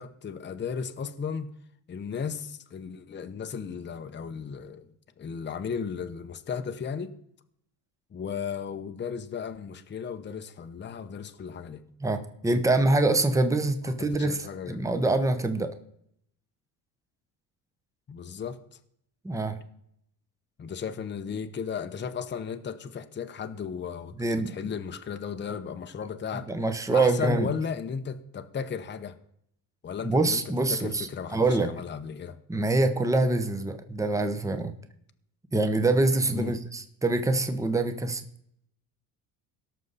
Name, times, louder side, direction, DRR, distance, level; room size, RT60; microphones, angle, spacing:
voice 1, 0.0-1.5 1.9-4.9 5.2-7.1 8.1-11.8 13.8-14.8 18.1-18.8 20.6-26.5 26.9-29.2 29.8-30.4 30.7-32.4 36.3-36.5, left 6 dB, 25° left, 8 dB, 0.9 m, -35 dB
voice 2, 12.0-15.7 19.2-19.6 24.2-24.6 26.5-27.5 30.0-31.7 32.5-34.7 35.5-38.2, right 2 dB, 10° right, 8 dB, 1.0 m, -25 dB
17.5 x 6.5 x 4.1 m, 0.71 s
cardioid pair, 100°, 41 cm